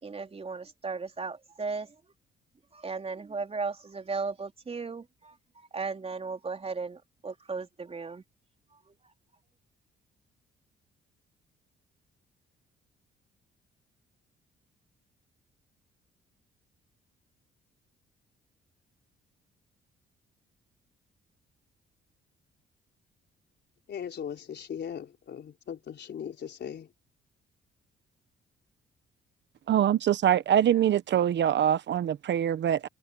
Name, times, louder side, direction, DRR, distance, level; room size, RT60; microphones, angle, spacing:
voice 1, 0.0-1.9 2.7-8.2, right 4 dB, 30° right, 3.9 m, -36 dB
voice 2, 23.9-26.9, left 8 dB, 60° left, 4.4 m, -39 dB
voice 3, 29.7-32.9, right 10 dB, 65° right, 1.1 m, -24 dB
cardioid pair, 90°, 20 cm